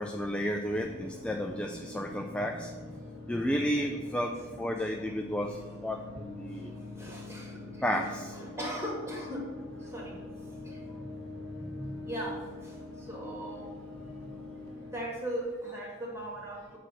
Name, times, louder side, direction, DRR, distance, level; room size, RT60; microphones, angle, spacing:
voice 1, 0.0-2.7 3.3-6.7 7.8-8.4 11.0-11.1 11.6-12.0, equal, 5° left, 2 dB, 0.3 m, -32 dB
sound 1, 0.7-15.0, left 2 dB, 65° right, 2.2 m, -44 dB
voice 2, 6.5-9.5 9.8-10.2 10.6-11.0 12.0-13.7 14.7-16.8, right 1 dB, 15° right, -2 dB, 1.6 m, -39 dB
6.5 x 4.0 x 6.2 m, 1.5 s
head